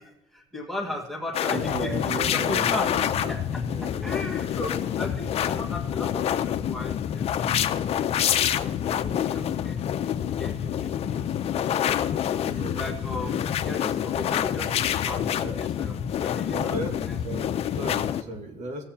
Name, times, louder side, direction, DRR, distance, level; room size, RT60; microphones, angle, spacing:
voice 1, 0.0-9.8 10.2-11.2 12.2-17.2, left 1 dB, ahead, 0 dB, 1.6 m, -37 dB
sound 1, 1.3-18.2, left 10 dB, 55° left, 0.6 m, -27 dB
voice 2, 1.5-3.3 3.7-4.4 12.4-12.8 13.1-13.4 15.4-15.6 16.5-18.8, right 2 dB, 70° right, 3 dB, 1.8 m, -36 dB
16.0 x 7.6 x 2.8 m, 1.0 s
cardioid pair, 110°, 12 cm